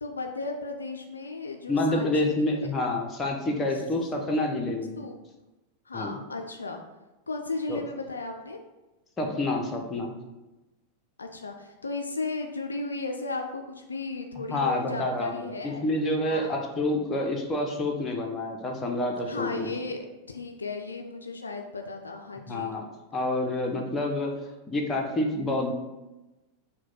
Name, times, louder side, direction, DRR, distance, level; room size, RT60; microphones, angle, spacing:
voice 1, 0.0-2.7 5.0-5.1 5.9-6.8 7.3-8.6 11.2-16.0 16.3-16.5 19.3-20.0 20.3-22.8, left 3 dB, 75° left, 4 dB, 0.3 m, -35 dB
voice 2, 1.7-5.0 5.9-6.1 7.7-7.8 9.2-10.1 14.5-19.7 22.5-22.8 23.1-24.3 24.7-25.7, left 1 dB, 20° left, 1 dB, 0.8 m, -28 dB
6.1 x 2.2 x 3.9 m, 1.0 s
figure-of-eight pair, 90°, 0 cm